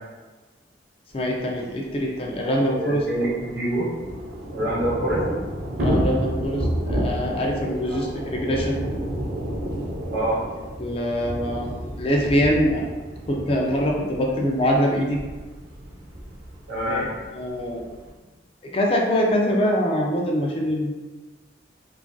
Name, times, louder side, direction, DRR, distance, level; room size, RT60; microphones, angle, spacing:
voice 1, 1.1-3.0 5.8-8.8 10.8-11.7 12.0-12.8 13.3-15.2 16.9-17.1 17.3-17.8 18.7-20.9, equal, 30° left, -1 dB, 0.3 m, -23 dB
Thunder / Rain, 1.5-1.6 1.8-1.9 2.2-18.1, equal, 55° right, 0.6 m, -31 dB
voice 2, 2.7-3.9 4.5-5.2 7.9-8.0 10.1-10.4 16.7-17.1, right 1 dB, 70° right, -7 dB, 1.2 m, -25 dB
3.6 x 2.4 x 2.2 m, 1.3 s
head